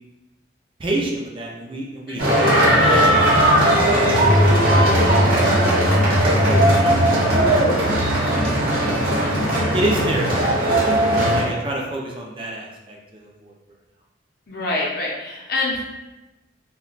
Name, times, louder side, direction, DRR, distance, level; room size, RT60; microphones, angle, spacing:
voice 1, 0.8-3.6 4.1-5.6 6.4-7.8 8.1-9.5 9.7-13.6, right 1 dB, 30° right, -2 dB, 0.4 m, -29 dB
voice 2, 2.1-2.4 14.5-15.9, left 2 dB, 55° left, -3 dB, 0.7 m, -26 dB
sound 1, 2.2-11.4, right 1 dB, 50° right, 0.9 m, -17 dB
2.2 x 2.2 x 3.8 m, 1.0 s
head